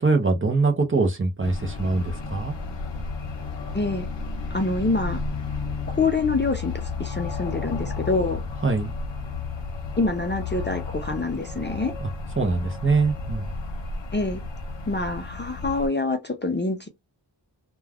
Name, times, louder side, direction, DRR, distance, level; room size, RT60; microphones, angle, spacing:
voice 1, 0.0-2.5 8.6-8.9 12.0-12.1 12.4-13.5, right 3 dB, 25° right, 0.6 m, -23 dB
sound 1, 1.4-15.9, left 4 dB, 65° left, 0.8 m, -32 dB
voice 2, 3.7-4.1 4.5-5.2 5.9-8.4 10.0-11.9 14.1-14.4 14.9-16.9, left 3 dB, 25° left, 0.4 m, -26 dB
2.3 x 2.3 x 3.3 m
wide cardioid pair, 95°, 47 cm